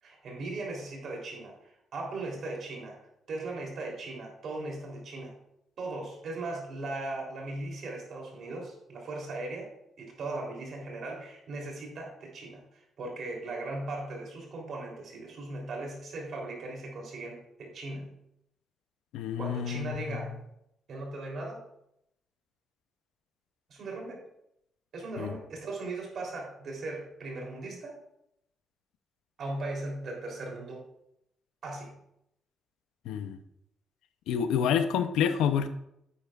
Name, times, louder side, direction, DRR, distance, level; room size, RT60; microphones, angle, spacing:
voice 1, 0.0-3.0 3.3-5.3 5.8-9.7 10.0-18.1 19.4-20.4 20.9-21.6 23.7-24.2 24.9-28.0 29.4-30.8 31.6-31.9, right 2 dB, 60° right, -1 dB, 3.4 m, -38 dB
voice 2, 19.1-20.0 25.2-25.3 33.1-33.4 34.3-35.7, left 8 dB, 90° left, 10 dB, 0.6 m, -28 dB
10.5 x 8.5 x 2.5 m, 0.80 s
cardioid pair, 90°, 0 cm